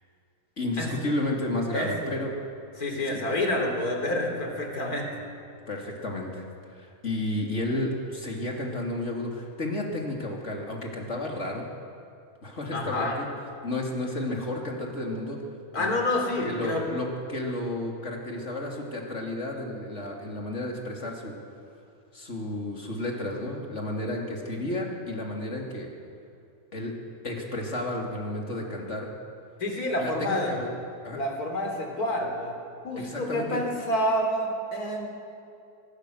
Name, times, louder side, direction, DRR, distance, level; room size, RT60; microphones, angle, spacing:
voice 1, 0.6-2.3 3.1-3.2 5.7-11.7 12.4-13.3 13.6-15.4 15.8-15.9 16.5-21.3 22.1-25.9 26.7-26.9 27.2-29.1 30.0-30.7 31.0-31.2 33.0-33.6, left 1 dB, 50° left, 0 dB, 3.5 m, -32 dB
voice 2, 2.8-5.3 12.7-13.2 15.7-16.9 29.6-30.5 31.1-32.5 32.8-35.1, left 1 dB, 85° left, 2 dB, 4.0 m, -28 dB
23.5 x 20.5 x 6.7 m, 2.6 s
omnidirectional pair, 1.6 m